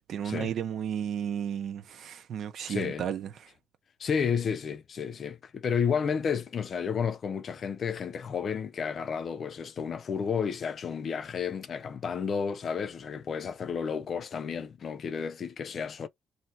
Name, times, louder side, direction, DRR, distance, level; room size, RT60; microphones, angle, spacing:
voice 1, 0.1-3.5, right 9 dB, 70° right, 0.8 m, -33 dB
voice 2, 2.7-3.1 4.0-16.1, left 6 dB, 55° left, 0.6 m, -31 dB
3.2 x 2.8 x 4.2 m
cardioid pair, 90°, 0 cm